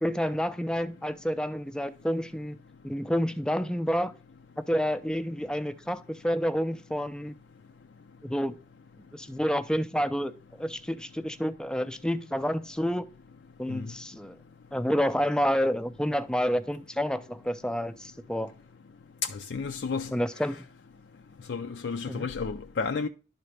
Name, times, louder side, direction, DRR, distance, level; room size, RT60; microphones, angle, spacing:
voice 1, 0.0-2.6 2.8-4.1 4.6-7.3 8.2-8.6 9.1-10.3 10.6-13.1 13.6-14.4 14.7-18.5 20.1-20.7 22.1-22.3, equal, 5° left, 0.4 m, -29 dB
voice 2, 19.2-20.1 21.5-23.1, left 5 dB, 75° left, 0.4 m, -32 dB
11.5 x 3.9 x 3.3 m
head